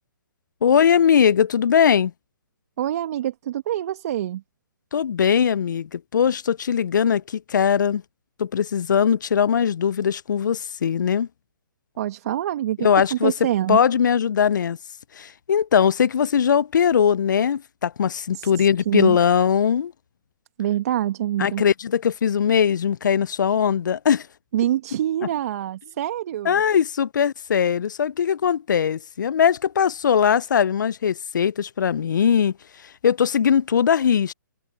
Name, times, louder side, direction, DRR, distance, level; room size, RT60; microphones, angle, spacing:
voice 1, 0.6-2.1 4.9-8.0 8.4-11.3 12.8-13.3 13.7-14.8 15.2-19.9 21.4-24.3 26.4-32.5 33.0-34.3, left 8 dB, 65° left, 0.6 m, -20 dB
voice 2, 2.8-4.4 12.0-13.8 18.3-19.2 20.6-21.6 24.5-26.6, right 12 dB, 50° right, 2.2 m, -25 dB
hypercardioid pair, 135°, 11 cm